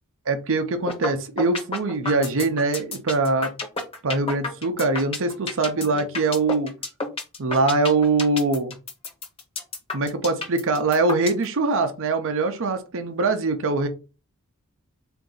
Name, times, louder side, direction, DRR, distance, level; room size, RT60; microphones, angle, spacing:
voice 1, 0.3-3.5 4.0-6.7 7.4-8.8 9.9-13.9, right 3 dB, 60° right, 7 dB, 0.6 m, -23 dB
sound 1, 0.9-1.1 1.4-11.4, left 3 dB, 25° left, 0.8 m, -30 dB
3.7 x 2.6 x 3.8 m, 0.31 s
head